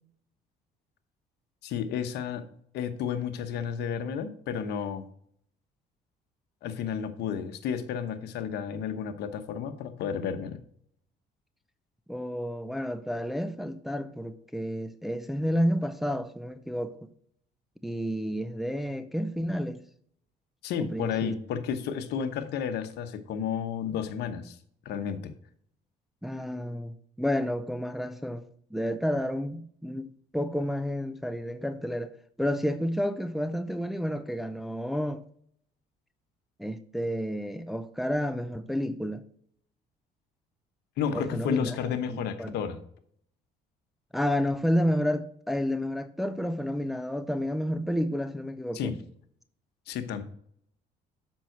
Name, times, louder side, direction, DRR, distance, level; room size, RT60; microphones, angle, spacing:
voice 1, 1.6-2.4 2.7-5.0 6.6-10.6 20.6-24.6 24.8-25.3 41.0-42.8 48.7-49.0 49.9-50.2, left 7 dB, 80° left, 1.0 m, -32 dB
voice 2, 12.1-17.0 17.8-19.8 20.8-21.4 26.2-32.1 32.4-35.2 36.6-39.2 41.1-41.8 42.1-42.5 44.1-48.9, equal, ahead, 0.5 m, -30 dB
7.5 x 5.6 x 4.5 m
cardioid pair, 110°, 17 cm